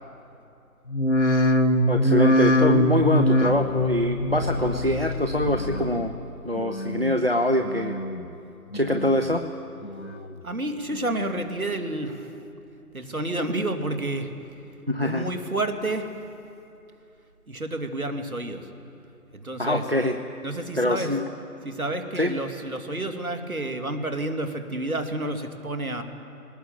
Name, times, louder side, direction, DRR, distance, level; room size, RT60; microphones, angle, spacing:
sound 1, 0.9-6.2 6.5-7.1 7.6-8.3 8.7-9.4 9.8-10.4 10.9-11.5 12.0-12.1, left 1 dB, 50° left, 1.4 m, -24 dB
voice 1, 1.9-6.1 6.4-7.9 8.7-9.4 14.9-15.3 19.6-20.2 20.8-21.2 22.2-22.3, left 1 dB, 40° right, 6 dB, 0.8 m, -24 dB
voice 2, 10.4-12.3 12.9-14.3 15.0-16.1 17.5-18.7 19.3-19.8 20.4-21.2 21.6-26.0, right 2 dB, 60° right, 6 dB, 2.5 m, -30 dB
20.5 x 19.0 x 7.5 m, 2.8 s
figure-of-eight pair, 175°, 47 cm